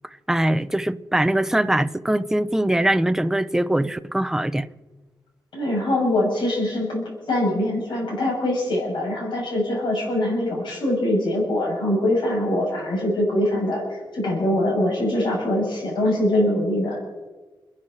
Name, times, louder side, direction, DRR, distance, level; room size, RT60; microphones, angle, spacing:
voice 1, 0.3-4.7, right 1 dB, 5° right, 0.5 m, -22 dB
voice 2, 5.5-17.0, left 1 dB, 65° left, 7.2 m, -23 dB
29.5 x 11.0 x 4.4 m
wide cardioid pair, 155°, 9 cm